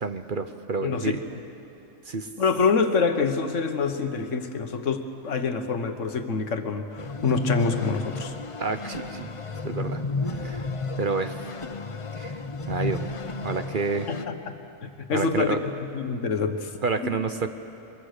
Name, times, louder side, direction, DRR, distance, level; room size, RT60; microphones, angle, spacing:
voice 1, 0.0-1.1 2.1-2.3 8.6-9.3 9.6-10.0 10.4-10.7 11.0-11.3 12.2-12.3 12.7-13.1 13.4-14.1 15.1-15.6 16.8-17.5, right 4 dB, 45° right, 8 dB, 0.9 m, -29 dB
voice 2, 0.8-1.1 2.4-8.3 14.1-14.6 14.8-16.7 17.0-17.1, left 5 dB, 70° left, 7 dB, 1.5 m, -26 dB
HV-longtrainidea, 7.0-14.2, left 3 dB, 30° left, 0.6 m, -32 dB
23.0 x 22.0 x 6.6 m, 2.7 s
omnidirectional pair, 1.3 m